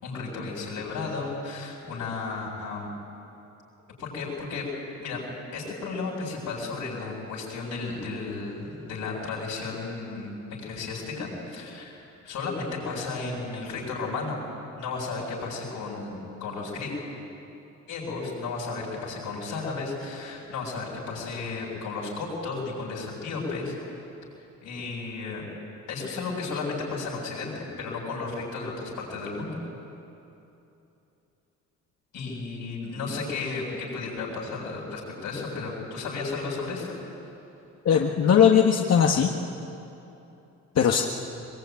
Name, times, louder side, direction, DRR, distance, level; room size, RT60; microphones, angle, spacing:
voice 1, 0.0-2.9 4.0-4.7 5.0-5.2 5.5-12.0 12.2-14.4 14.8-16.9 17.9-23.7 24.6-25.4 25.9-29.6 32.1-37.0, left 4 dB, 85° left, -3 dB, 7.7 m, -33 dB
voice 2, 37.8-39.3 40.7-41.0, left 8 dB, 60° left, 1 dB, 1.5 m, -19 dB
22.5 x 22.0 x 9.4 m, 2.9 s
cardioid pair, 90°, 30 cm